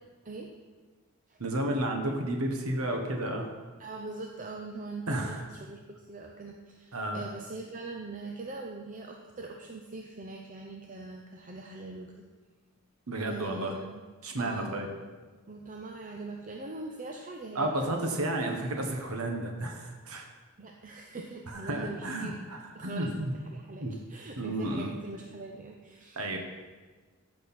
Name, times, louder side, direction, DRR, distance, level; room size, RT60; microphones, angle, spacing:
voice 1, 1.4-3.5 5.1-5.5 6.9-7.3 13.1-13.8 14.2-14.9 17.5-20.3 21.5-23.3 23.8-23.9 24.4-24.9 26.1-26.4, right 1 dB, 80° right, 3 dB, 1.4 m, -32 dB
voice 2, 3.8-12.2 13.3-14.0 14.4-15.0 15.5-17.9 20.6-22.4 22.7-23.1 23.4-26.2, right 3 dB, 35° right, 1 dB, 0.7 m, -42 dB
14.5 x 6.4 x 4.3 m, 1.3 s
head